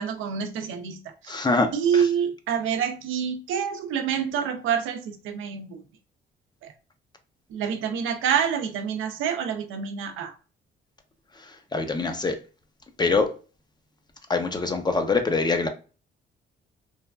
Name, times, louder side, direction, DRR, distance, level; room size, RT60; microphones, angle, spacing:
voice 1, 0.0-1.4 1.7-5.8 6.6-6.7 7.5-10.3, right 7 dB, 85° right, 0.5 m, -27 dB
voice 2, 1.3-2.1 11.7-12.4 13.0-13.3 14.3-15.7, left 3 dB, 20° left, 0.5 m, -24 dB
3.2 x 2.3 x 2.2 m
cardioid pair, 90°, 20 cm